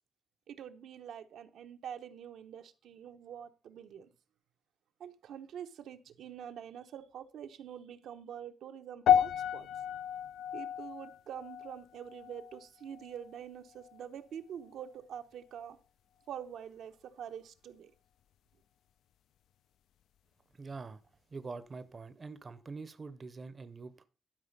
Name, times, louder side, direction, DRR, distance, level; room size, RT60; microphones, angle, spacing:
voice 1, 0.5-4.1 5.0-9.7 10.5-15.8 16.3-17.9, right 9 dB, 80° right, 0.9 m, -46 dB
sound 1, 9.1-13.5 13.7-14.1 14.8-14.9, left 9 dB, 85° left, 0.4 m, -32 dB
voice 2, 20.6-21.0 21.3-24.0, right 4 dB, 30° right, 0.6 m, -44 dB
12.0 x 5.0 x 5.2 m
wide cardioid pair, 155°, 0 cm